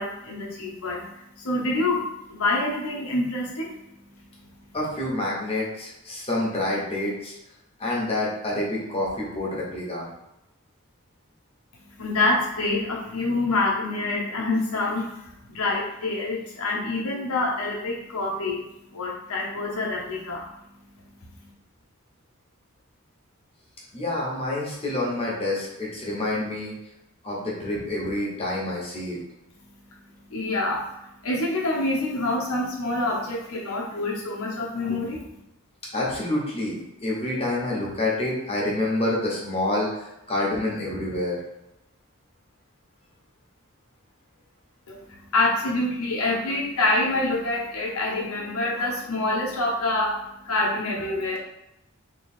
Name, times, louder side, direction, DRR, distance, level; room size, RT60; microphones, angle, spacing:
voice 1, 0.0-3.7 12.0-18.6 18.9-20.5 30.3-30.9 31.2-35.2 44.9-51.4, left 2 dB, 85° left, -2 dB, 0.9 m, -26 dB
voice 2, 4.7-7.3 7.8-10.1 23.9-26.7 27.2-29.2 35.9-41.3, left 1 dB, 25° left, -4 dB, 1.2 m, -27 dB
3.1 x 3.1 x 4.4 m, 0.87 s
head